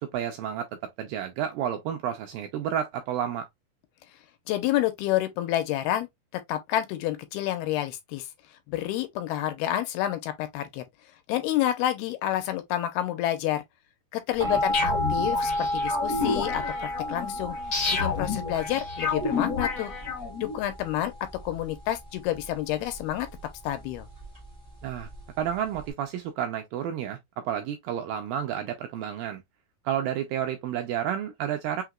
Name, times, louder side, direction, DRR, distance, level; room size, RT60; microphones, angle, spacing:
voice 1, 0.1-0.7 1.0-3.5 14.4-14.6 24.8-25.1 25.4-27.2 27.5-29.4 29.9-31.8, right 9 dB, 85° right, 2.1 m, -30 dB
voice 2, 4.5-6.1 6.3-8.3 8.7-10.8 11.3-13.6 14.1-17.6 17.9-19.9 20.4-21.1 21.4-23.3 23.6-24.1, left 13 dB, 85° left, 2.6 m, -29 dB
sound 1, 14.4-25.9, equal, 50° right, 0.4 m, -33 dB
sound 2, 14.7-20.5, left 4 dB, 70° left, 0.9 m, -30 dB
5.8 x 2.9 x 2.3 m
omnidirectional pair, 4.6 m